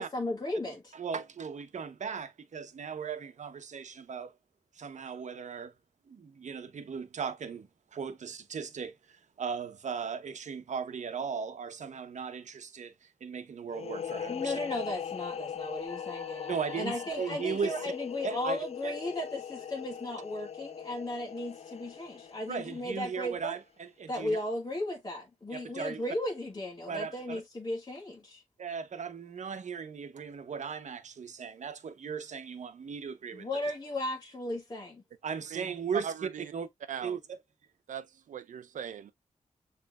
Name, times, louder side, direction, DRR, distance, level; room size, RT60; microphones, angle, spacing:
voice 1, 0.0-0.9 14.3-23.6 24.1-28.4 33.3-35.0, left 1 dB, 30° left, 1.6 m, -36 dB
voice 2, 0.9-4.3 4.7-5.7 6.1-14.6 16.5-17.9 18.2-19.0 22.5-24.4 25.5-26.0 26.9-27.4 28.6-33.6 35.2-36.7 37.0-37.4, right 6 dB, 70° right, 0.9 m, -37 dB
sound 1, 13.7-23.2, left 8 dB, 55° left, 0.4 m, -40 dB
sound 2, 15.9-18.5, left 2 dB, 5° left, 1.4 m, -53 dB
voice 3, 36.0-36.5 36.9-37.2 37.9-39.1, right 8 dB, 90° right, 0.6 m, -40 dB
6.9 x 3.2 x 2.3 m
cardioid pair, 80°, 13 cm